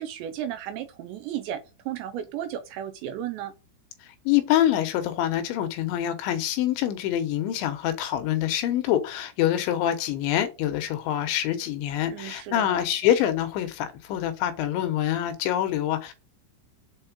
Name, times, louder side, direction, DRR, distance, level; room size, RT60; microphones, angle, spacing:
voice 1, 0.0-1.6 1.9-3.5 12.1-12.8, right 10 dB, 80° right, 2.7 m, -34 dB
voice 2, 4.3-16.1, left 11 dB, 75° left, 3.2 m, -25 dB
7.8 x 4.3 x 6.0 m
omnidirectional pair, 5.6 m